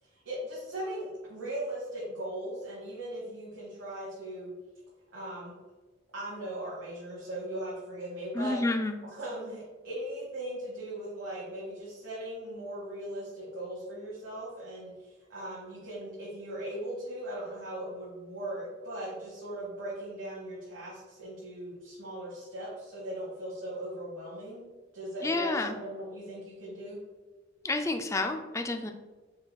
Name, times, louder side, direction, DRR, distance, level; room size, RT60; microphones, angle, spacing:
voice 1, 0.0-4.5 5.1-5.5 6.1-8.6 9.2-24.6 24.9-27.0, right 1 dB, 80° right, -7 dB, 1.2 m, -39 dB
voice 2, 8.3-9.0 25.2-25.8 27.6-28.9, left 2 dB, 15° left, 6 dB, 0.3 m, -29 dB
4.9 x 4.0 x 2.2 m, 1.3 s
head